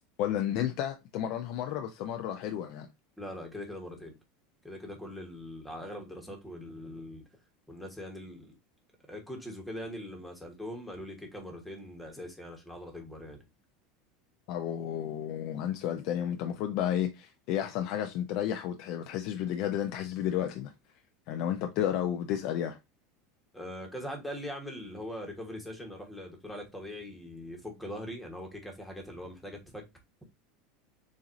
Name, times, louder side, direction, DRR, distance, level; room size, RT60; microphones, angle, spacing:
voice 1, 0.2-2.9 14.5-20.7 21.3-22.8, left 10 dB, 50° left, 0.6 m, -32 dB
voice 2, 3.2-4.2 4.6-7.2 7.7-8.5 9.1-13.4 23.5-29.8, left 1 dB, 5° left, 1.3 m, -41 dB
7.1 x 2.6 x 2.6 m
supercardioid pair, 160°, 0 cm